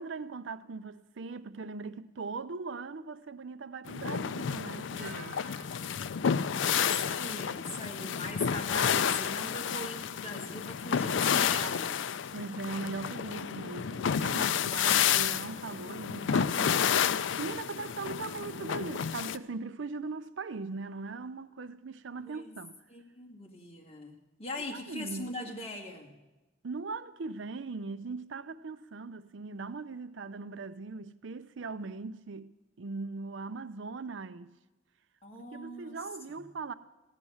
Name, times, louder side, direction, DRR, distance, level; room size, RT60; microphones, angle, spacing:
voice 1, 0.0-5.4 12.3-22.8 24.7-25.3 26.6-32.5 32.8-34.5 35.4-36.7, right 4 dB, 70° right, 0.5 m, -40 dB
sound 1, 3.9-19.4, left 8 dB, 70° left, 0.4 m, -30 dB
sound 2, 5.0-7.8 8.1-8.6, right 8 dB, 50° right, 1.4 m, -55 dB
voice 2, 6.6-12.0 22.2-22.6 22.9-26.1 35.2-36.0 36.3-36.4, left 1 dB, 30° left, 2.1 m, -41 dB
15.0 x 10.5 x 7.1 m
head